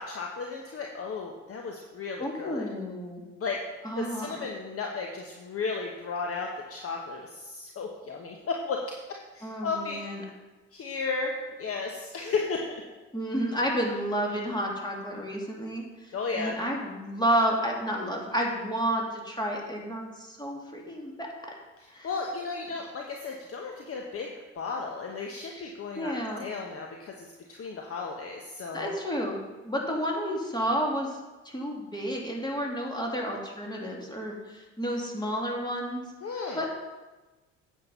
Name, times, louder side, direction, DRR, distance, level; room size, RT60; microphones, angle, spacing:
voice 1, 0.0-2.6 3.4-3.6 4.0-10.0 10.7-12.8 16.1-16.5 21.8-28.9 36.2-36.6, left 4 dB, 35° left, 1 dB, 1.3 m, -34 dB
voice 2, 2.2-3.2 3.8-4.3 9.4-10.2 13.1-21.3 21.9-22.1 25.5-26.4 28.7-31.2 31.4-36.0 36.5-36.7, equal, 10° left, -1 dB, 2.9 m, -31 dB
8.9 x 7.7 x 5.5 m, 1.2 s
hypercardioid pair, 60°, 38 cm